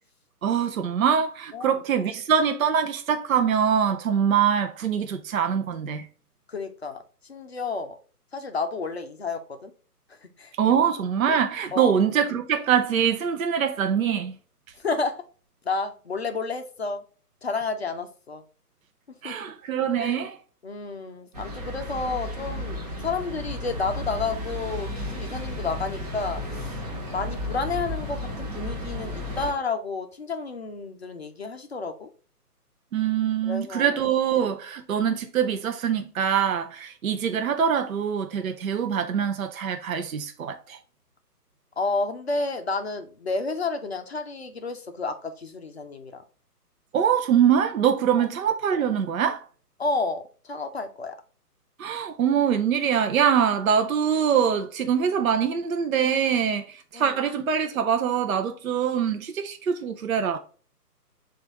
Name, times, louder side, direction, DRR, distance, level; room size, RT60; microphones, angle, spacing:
voice 1, 0.4-6.1 10.6-14.4 19.2-20.4 32.9-40.8 46.9-49.5 51.8-60.4, right 8 dB, 60° right, 0.5 m, -24 dB
voice 2, 6.5-7.0 7.3-8.0 8.3-9.7 10.2-10.5 11.7-12.0 14.8-15.2 15.7-17.0 17.4-18.4 19.2-19.4 20.0-20.2 20.6-26.4 27.1-32.1 33.4-34.0 41.8-46.2 48.2-48.3 49.8-51.2 56.9-57.2, left 3 dB, 45° left, 0.5 m, -31 dB
sound 1, 21.3-29.5, left 1 dB, 25° right, 0.8 m, -33 dB
5.9 x 2.5 x 2.9 m
figure-of-eight pair, 140°, 47 cm